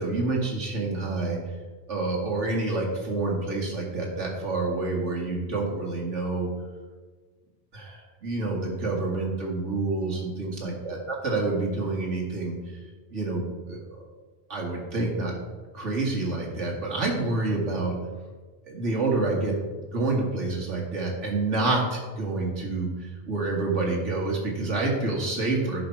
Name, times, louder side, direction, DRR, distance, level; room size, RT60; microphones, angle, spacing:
voice 1, 0.0-1.4 1.9-6.5 7.7-12.6 13.1-13.8 14.5-15.3 15.7-18.0 18.7-19.5 19.8-25.8, right 3 dB, 75° right, -1 dB, 2.2 m, -28 dB
10.5 x 5.6 x 4.6 m, 1.4 s
omnidirectional pair, 1.2 m